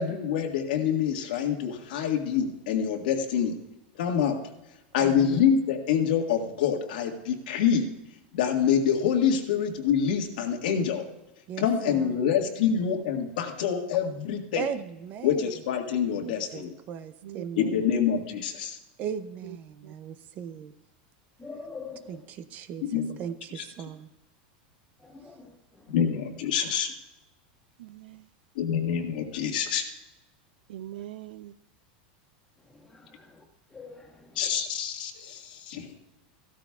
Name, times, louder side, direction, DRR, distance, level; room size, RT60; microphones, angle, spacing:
voice 1, 0.0-3.6 4.0-4.4 4.9-7.9 8.3-11.0 11.6-14.7 15.2-16.7 17.6-18.8 22.9-23.2 23.6-23.7 25.9-26.9 28.6-29.9 34.4-35.9, left 8 dB, 80° left, 3 dB, 1.7 m, -26 dB
voice 2, 5.0-5.4 11.5-12.2 14.6-15.5 16.2-17.8 19.0-20.7 22.1-24.1, right 8 dB, 35° right, 12 dB, 0.6 m, -38 dB
voice 3, 17.2-17.9 19.4-19.6 19.8-19.9 27.8-28.2 30.7-31.5, right 13 dB, 85° right, 15 dB, 0.5 m, -42 dB
voice 4, 21.4-22.1 25.0-25.5 32.9-33.3 33.7-34.3, left 4 dB, 10° left, 0 dB, 1.8 m, -43 dB
15.5 x 12.5 x 2.4 m, 0.95 s
supercardioid pair, 150°, 5 cm